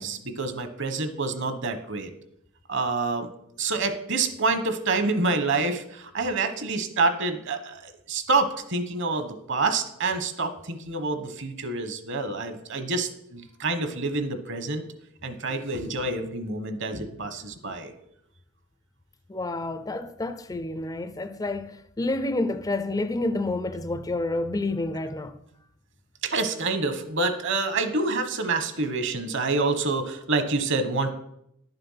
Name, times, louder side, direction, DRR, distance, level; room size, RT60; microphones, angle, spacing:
voice 1, 0.0-2.1 2.7-3.3 3.6-14.8 15.2-17.9 26.2-31.1, right 3 dB, 55° right, 1.2 m, -27 dB
voice 2, 19.3-25.4, left 2 dB, 15° left, 0.4 m, -29 dB
11.0 x 6.8 x 5.7 m
head